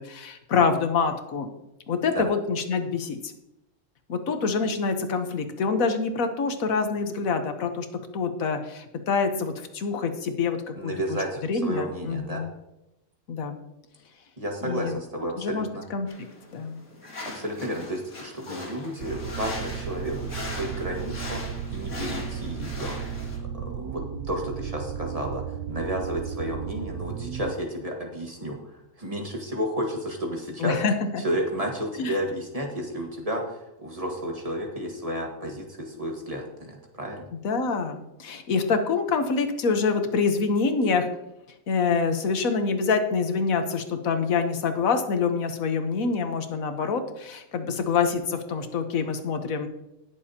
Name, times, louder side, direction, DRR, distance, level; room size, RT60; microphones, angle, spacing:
voice 1, 0.0-1.5 1.9-3.3 4.1-7.9 8.1-10.9 11.5-12.5 13.3-13.6 14.6-14.9 15.4-16.1 16.5-16.8 30.6-30.9 32.0-32.1 37.4-41.1 41.7-49.7, left 5 dB, 90° left, 7 dB, 1.5 m, -26 dB
voice 2, 10.7-12.4 14.4-15.8 17.3-21.4 21.7-30.8 31.2-37.3, equal, 25° right, 0 dB, 1.7 m, -32 dB
sound 1, 16.1-23.4, left 2 dB, 60° left, 2.6 m, -40 dB
sound 2, 19.0-27.6, right 8 dB, 85° right, 1.1 m, -34 dB
19.5 x 7.0 x 2.8 m, 0.90 s
omnidirectional pair, 1.4 m